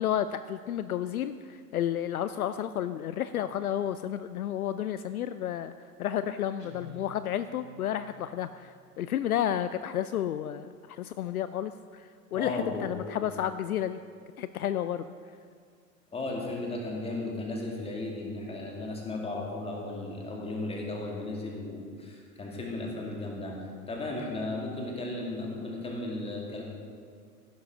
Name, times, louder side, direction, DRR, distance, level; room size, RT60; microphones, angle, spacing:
voice 1, 0.0-5.7 6.0-14.0 14.4-15.1, left 10 dB, 65° left, 12 dB, 0.5 m, -31 dB
Guitar, 6.6-8.3, left 2 dB, 85° left, 1.7 m, -50 dB
voice 2, 12.3-13.1 16.1-23.6 23.9-26.6, left 2 dB, 10° left, -1 dB, 2.2 m, -35 dB
15.0 x 11.5 x 3.7 m, 2.1 s
figure-of-eight pair, 90°, 48 cm